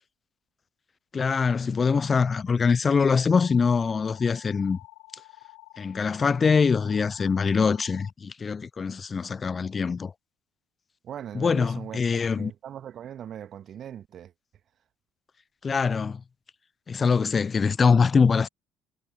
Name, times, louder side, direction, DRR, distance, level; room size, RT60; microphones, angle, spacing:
voice 1, 1.1-4.8 5.8-10.1 11.3-12.5 15.6-16.2 16.9-18.5, left 5 dB, 30° left, 0.5 m, -23 dB
sound 1, 3.3-8.1, left 31 dB, 65° left, 3.4 m, -50 dB
voice 2, 11.0-12.0 12.4-14.3, right 10 dB, 50° right, 1.6 m, -40 dB
figure-of-eight pair, 55°, 0 cm